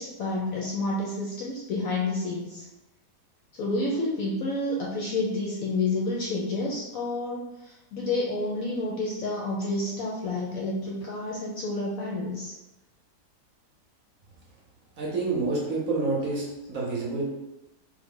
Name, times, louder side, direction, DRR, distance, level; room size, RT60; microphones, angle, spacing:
voice 1, 0.0-2.7 3.5-12.5, left 2 dB, 70° left, -3 dB, 0.8 m, -29 dB
voice 2, 15.0-17.2, right 3 dB, 60° right, -3 dB, 1.0 m, -28 dB
3.3 x 2.1 x 3.6 m, 0.97 s
omnidirectional pair, 1.8 m